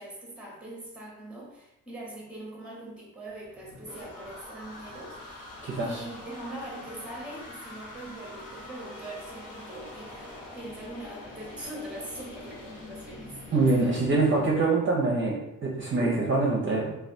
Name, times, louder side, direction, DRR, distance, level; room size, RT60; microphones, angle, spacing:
voice 1, 0.0-13.9, right 1 dB, 5° right, -2 dB, 0.7 m, -42 dB
sound 1, 3.3-14.5, left 2 dB, 70° left, 0.9 m, -44 dB
voice 2, 5.6-6.0 13.5-17.0, right 3 dB, 35° right, -3 dB, 0.5 m, -25 dB
3.3 x 2.3 x 2.5 m, 0.91 s
cardioid pair, 150°, 33 cm